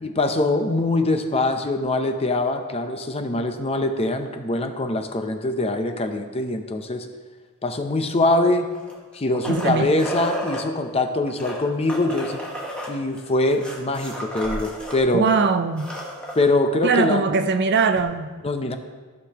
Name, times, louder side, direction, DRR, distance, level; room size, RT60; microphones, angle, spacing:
voice 1, 0.0-7.1 7.6-8.7 9.1-12.4 12.9-15.3 16.3-17.2 18.4-18.8, left 2 dB, 30° left, 7 dB, 0.6 m, -23 dB
sound 1, 8.7-10.6 11.3-15.0 15.3-15.4 15.7-16.5 18.0-18.1, equal, 5° left, 1.4 m, -33 dB
voice 2, 9.5-9.9 15.1-15.9 16.8-18.3, right 4 dB, 50° right, 9 dB, 0.5 m, -21 dB
14.5 x 6.5 x 2.9 m, 1.4 s
head